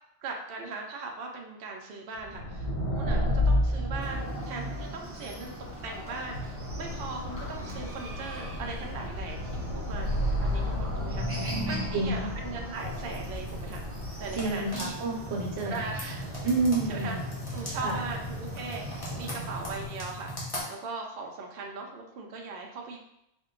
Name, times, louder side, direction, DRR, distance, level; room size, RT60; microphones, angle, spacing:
voice 1, 0.2-5.5 5.8-13.8 14.2-14.9 15.6-16.3 16.8-17.2 17.5-23.0, right 3 dB, 65° right, 1 dB, 0.7 m, -39 dB
sound 1, 2.2-14.8, left 1 dB, 75° left, 1.2 m, -32 dB
Chicken rooster, 4.0-19.9, equal, 20° right, 0.5 m, -43 dB
voice 2, 11.5-12.3 14.4-15.8 16.4-17.2 17.8-18.0, right 3 dB, 85° right, 0 dB, 1.1 m, -29 dB
sound 2, 12.7-20.6, left 1 dB, 30° left, 1.0 m, -38 dB
4.4 x 2.2 x 3.6 m, 0.82 s
omnidirectional pair, 1.1 m